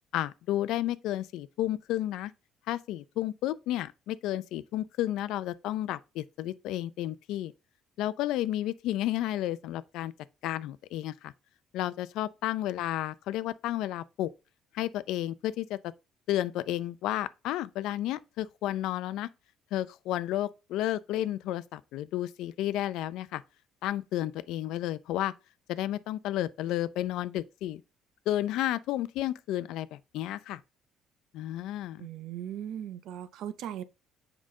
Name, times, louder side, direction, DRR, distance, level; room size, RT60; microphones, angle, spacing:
voice 1, 0.1-2.3 2.7-7.5 8.0-10.1 10.4-11.3 11.7-14.3 14.7-15.8 16.3-19.3 19.7-23.4 23.8-25.3 25.7-27.8 28.3-30.6 31.3-32.1, left 13 dB, 75° left, 0.4 m, -32 dB
voice 2, 32.0-33.8, right 10 dB, 65° right, 0.6 m, -38 dB
7.5 x 4.9 x 3.7 m
cardioid pair, 145°, 0 cm